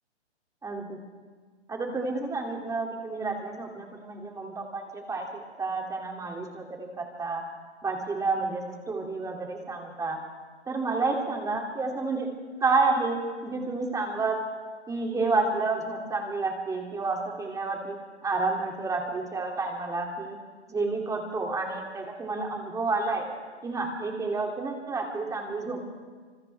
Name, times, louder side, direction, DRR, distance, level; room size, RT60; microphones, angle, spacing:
voice 1, 0.6-1.0 1.7-5.3 5.6-7.4 7.8-10.2 10.7-12.3 12.6-14.4 14.9-18.0 18.2-20.4 20.7-23.3 23.6-25.9, right 3 dB, 10° right, 1 dB, 2.7 m, -30 dB
28.5 x 26.5 x 3.5 m, 1.5 s
hypercardioid pair, 135°, 35 cm